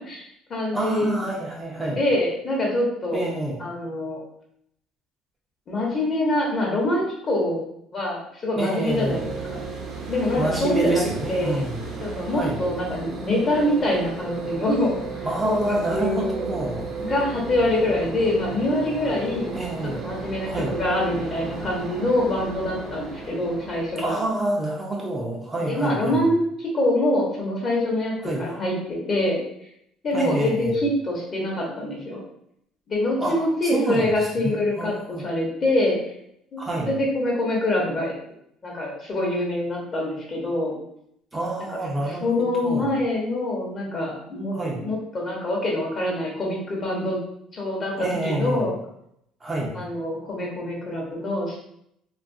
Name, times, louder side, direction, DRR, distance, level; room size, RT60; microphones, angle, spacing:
voice 1, 0.0-1.2 1.8-3.2 3.6-4.2 5.7-7.6 7.9-9.6 10.1-11.6 12.0-16.5 17.1-19.6 20.0-24.2 25.6-28.1 28.4-29.4 30.0-32.2 32.9-36.1 36.5-38.1 38.6-40.7 41.7-41.8 42.1-47.2 47.5-48.8 49.7-51.6, left 1 dB, 40° left, -2 dB, 1.0 m, -25 dB
voice 2, 0.7-2.0 3.1-3.6 8.6-9.2 10.3-11.8 12.3-12.6 15.2-16.8 19.5-20.1 20.5-20.7 24.0-26.2 28.2-28.4 30.1-30.7 33.2-33.4 33.6-34.1 34.4-35.2 36.6-36.9 41.3-42.9 44.5-44.8 47.9-48.7 49.4-49.7, right 2 dB, 20° right, -2 dB, 0.6 m, -27 dB
sound 1, 8.8-24.5, right 4 dB, 50° right, 0.7 m, -34 dB
2.7 x 2.4 x 2.6 m, 0.75 s
cardioid pair, 110°, 0 cm